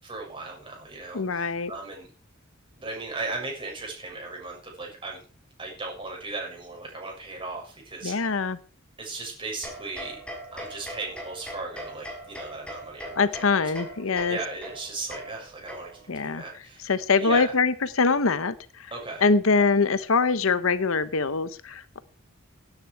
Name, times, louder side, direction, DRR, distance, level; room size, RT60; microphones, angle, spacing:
voice 1, 0.0-2.1 2.7-5.2 5.6-8.4 9.0-10.2 10.5-13.7 14.3-16.9 17.2-17.5 18.9-19.3, right 3 dB, 25° right, -1 dB, 6.7 m, -37 dB
voice 2, 1.1-1.7 8.0-8.6 13.2-14.4 16.1-16.4 16.8-18.5 19.2-21.8, left 4 dB, 70° left, 14 dB, 0.9 m, -23 dB
sound 1, 9.6-16.2, equal, 5° left, 5.7 m, -41 dB
17.0 x 9.9 x 4.7 m, 0.39 s
head